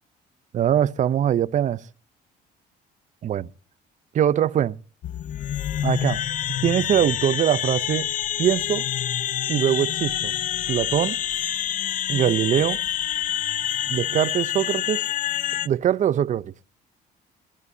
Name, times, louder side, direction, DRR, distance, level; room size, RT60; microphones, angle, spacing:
voice 1, 0.5-1.8 3.2-3.5 4.1-4.8 5.8-6.2 6.6-8.1 8.4-8.8 9.5-10.3 10.7-11.2 12.1-12.8 13.9-15.0 15.6-16.5, right 10 dB, 45° right, 0.6 m, -22 dB
sound 1, 5.0-15.7, left 11 dB, 50° left, 0.6 m, -27 dB
21.0 x 19.5 x 2.7 m
cardioid pair, 110°, 17 cm